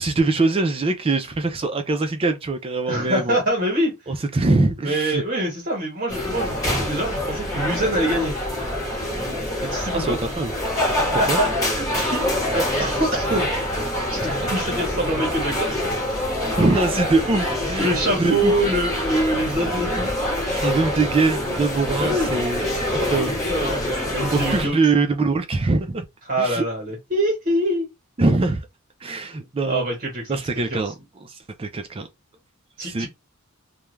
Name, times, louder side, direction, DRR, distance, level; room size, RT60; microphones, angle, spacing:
voice 1, 0.0-3.4 4.1-5.2 9.9-10.5 11.3-11.4 16.6-18.5 20.5-23.4 24.3-26.0 26.4-26.6 28.2-28.6 29.0-29.9 30.3-30.9 31.2-32.1 32.8-33.1, right 3 dB, 25° right, 0.4 m, -23 dB
voice 2, 2.9-3.9 4.8-8.3 9.6-10.2 11.0-13.5 14.1-15.9 17.8-20.1 22.0-22.3 23.5-24.8 26.3-27.9 29.1-29.2 29.6-30.9 32.8-33.1, right 1 dB, 45° right, 1.1 m, -25 dB
sound 1, 6.1-24.6, left 1 dB, 15° left, 1.2 m, -25 dB
2.4 x 2.2 x 3.1 m
head